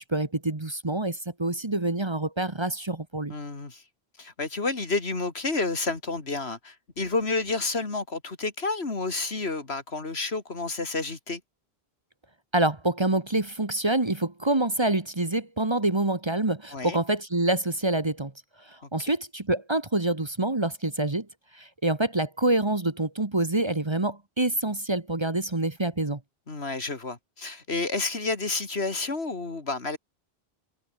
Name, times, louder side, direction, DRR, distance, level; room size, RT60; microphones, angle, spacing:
voice 1, 0.1-3.3 12.5-18.3 18.7-21.3 21.5-26.2, right 2 dB, 25° right, 1.4 m, -26 dB
voice 2, 3.3-3.8 4.2-11.4 16.7-17.0 26.5-30.0, left 3 dB, 80° left, 3.0 m, -30 dB
omnidirectional pair, 1.1 m